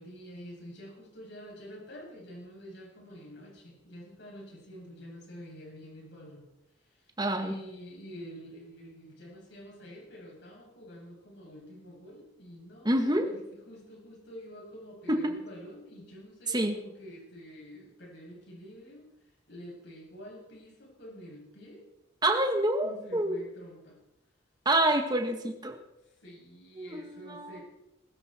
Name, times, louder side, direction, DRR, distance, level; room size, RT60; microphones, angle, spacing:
voice 1, 0.0-6.5 6.8-13.4 13.7-19.0 19.5-21.8 22.8-24.0 26.0-27.6, equal, 60° left, -2 dB, 7.8 m, -48 dB
voice 2, 7.2-7.5 12.8-13.3 15.1-15.4 16.5-16.8 22.2-23.4 24.7-25.7 26.8-27.6, right 1 dB, 20° right, 4 dB, 1.8 m, -27 dB
20.5 x 14.0 x 4.5 m, 0.91 s
head